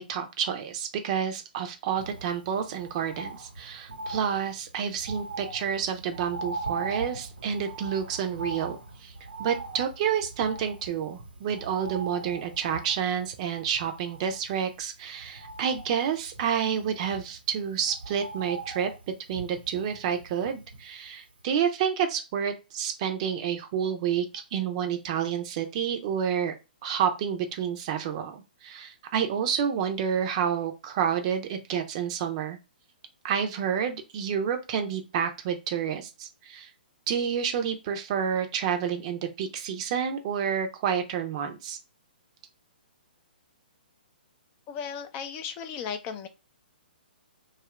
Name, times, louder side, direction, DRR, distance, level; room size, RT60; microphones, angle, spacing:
voice 1, 0.0-9.1 9.4-18.9 19.3-26.5 26.8-32.6 33.2-36.7 37.1-41.8, right 8 dB, 40° right, 6 dB, 0.5 m, -29 dB
Bird, 2.0-21.1 21.4-21.5, right 3 dB, 80° right, 1.1 m, -41 dB
voice 2, 44.7-46.3, left 7 dB, 30° left, 8 dB, 0.4 m, -35 dB
2.7 x 2.4 x 3.0 m, 0.26 s
figure-of-eight pair, 125°, 5 cm